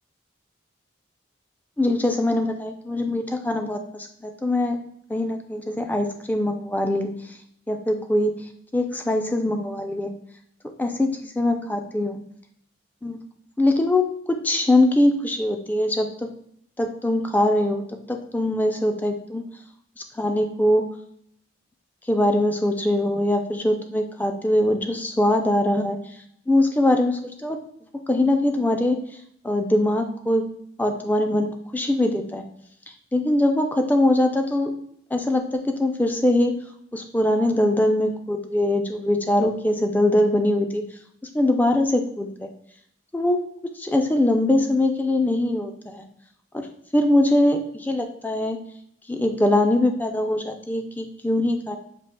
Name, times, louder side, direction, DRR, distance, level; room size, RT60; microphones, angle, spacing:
voice 1, 1.8-4.8 5.1-7.4 7.7-8.3 8.7-10.1 10.8-12.2 13.0-13.2 13.6-16.1 16.8-17.8 18.1-19.4 20.1-20.9 22.1-26.0 26.5-27.6 28.1-29.0 29.4-30.5 30.8-32.4 33.1-34.7 35.1-36.5 36.9-40.8 41.3-42.5 43.1-46.0 46.5-46.7 46.9-48.6 49.1-51.8, left 1 dB, 10° left, 4 dB, 0.4 m, -22 dB
6.8 x 2.8 x 2.2 m, 0.69 s
head